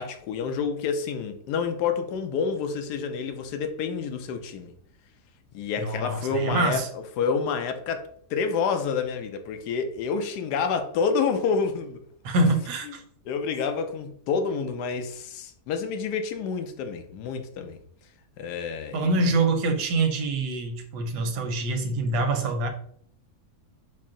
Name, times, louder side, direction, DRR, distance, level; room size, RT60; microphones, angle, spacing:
voice 1, 0.0-4.7 5.5-12.0 12.8-13.0 13.3-17.8 18.4-19.1, left 5 dB, 80° left, 1.1 m, -28 dB
voice 2, 5.8-6.9 12.2-13.0 18.9-22.7, right 2 dB, 80° right, 1.3 m, -25 dB
4.5 x 2.0 x 3.7 m
omnidirectional pair, 1.7 m